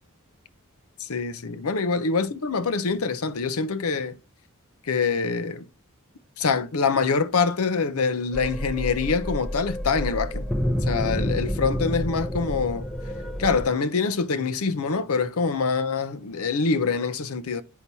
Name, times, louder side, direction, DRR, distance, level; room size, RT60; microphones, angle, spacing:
voice 1, 1.0-4.2 4.9-5.6 6.4-10.5 10.8-12.9 13.4-17.6, left 4 dB, 75° left, 0.7 m, -25 dB
sound 1, 8.3-13.7, equal, ahead, 0.7 m, -29 dB
8.3 x 5.8 x 2.7 m
head